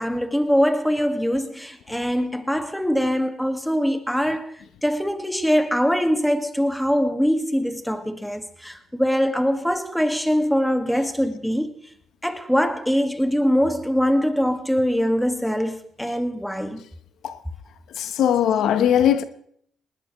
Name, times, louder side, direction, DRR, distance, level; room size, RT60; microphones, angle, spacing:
voice 1, 0.0-4.5 4.8-11.7 12.2-16.8, equal, ahead, 1.9 m, -22 dB
voice 2, 18.0-19.2, left 10 dB, 75° left, 1.0 m, -19 dB
20.0 x 19.5 x 3.1 m
cardioid pair, 90°, 0 cm